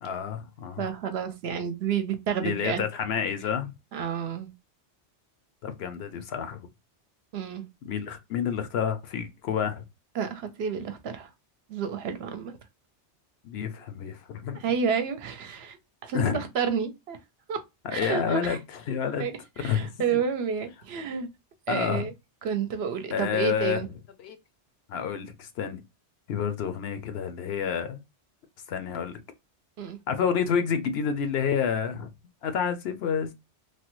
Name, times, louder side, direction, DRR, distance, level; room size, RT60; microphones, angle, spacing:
voice 1, 0.0-0.8 2.4-3.7 5.6-6.6 7.8-9.8 13.4-14.7 16.1-16.5 17.9-18.6 18.9-19.3 19.6-20.2 21.7-22.1 23.1-23.8 24.2-24.4 24.9-25.8 26.3-28.0 28.7-29.2 30.1-32.1 32.4-33.3, left 7 dB, 65° left, 0.8 m, -29 dB
voice 2, 0.8-2.8 3.9-4.5 7.3-7.6 10.1-11.3 11.7-12.5 14.6-17.2 17.5-17.6 17.9-18.6 19.2-21.3 21.7-22.1 22.4-23.9 29.8-30.0, right 6 dB, 70° right, 0.8 m, -30 dB
3.2 x 2.1 x 3.0 m
omnidirectional pair, 1.2 m